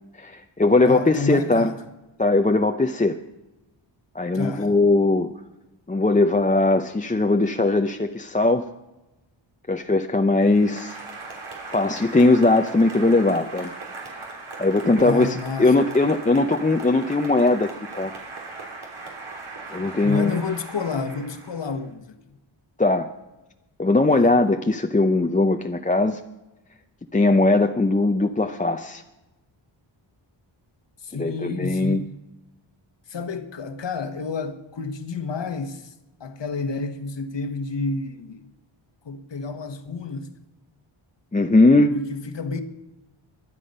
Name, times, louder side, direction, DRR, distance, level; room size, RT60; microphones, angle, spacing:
voice 1, 0.2-1.7 2.2-3.2 4.1-5.3 5.9-8.6 9.7-11.0 11.7-13.7 14.6-17.7 17.9-18.1 19.7-20.4 22.8-23.1 23.8-26.2 27.1-29.0 31.1-32.0 41.3-41.9, left 2 dB, 15° left, 0.6 m, -19 dB
voice 2, 0.9-1.8 4.3-4.7 15.0-15.9 20.0-22.2 24.1-24.3 31.0-32.1 33.1-35.9 36.2-38.5 39.0-40.4 41.9-42.6, left 4 dB, 65° left, 1.4 m, -30 dB
Applause, 10.4-21.9, right 3 dB, 90° right, 3.6 m, -39 dB
23.0 x 8.5 x 5.4 m
wide cardioid pair, 90°, 47 cm